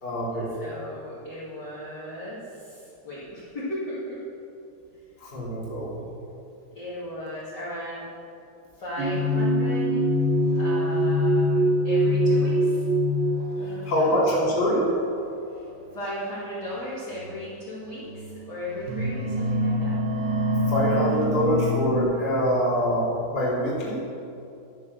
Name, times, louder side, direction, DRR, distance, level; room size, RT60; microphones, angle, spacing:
voice 1, 0.0-0.5 5.2-6.0 13.9-14.9 20.7-24.0, equal, 15° left, -7 dB, 2.4 m, -24 dB
voice 2, 0.6-4.2 6.7-8.0 8.7-10.0 10.6-12.8 13.6-14.2 15.9-20.0 21.3-21.5, left 1 dB, 30° left, -10 dB, 2.2 m, -36 dB
sound 1, 9.0-14.2 15.0-15.3 16.4-16.5 17.2-17.3 18.0-18.4 18.7-22.0, equal, 80° right, 4.2 m, -24 dB
13.0 x 7.2 x 6.8 m, 2.6 s
omnidirectional pair, 4.9 m